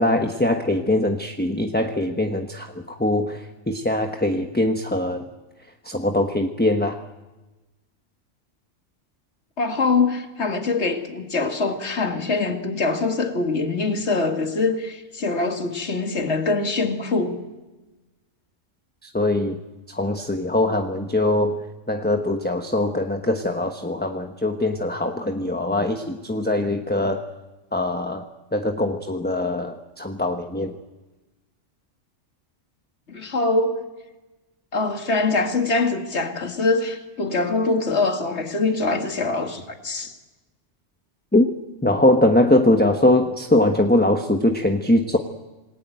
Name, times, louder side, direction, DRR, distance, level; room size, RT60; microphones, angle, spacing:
voice 1, 0.0-5.3 5.8-7.0 19.0-19.6 19.9-21.6 21.9-27.2 27.7-28.2 28.5-30.8 41.3-41.4 41.8-45.2, left 1 dB, 10° left, 1.0 m, -22 dB
voice 2, 9.6-17.4 33.1-33.8 34.7-40.1, left 3 dB, 60° left, 2.4 m, -23 dB
27.0 x 18.5 x 9.1 m
omnidirectional pair, 1.3 m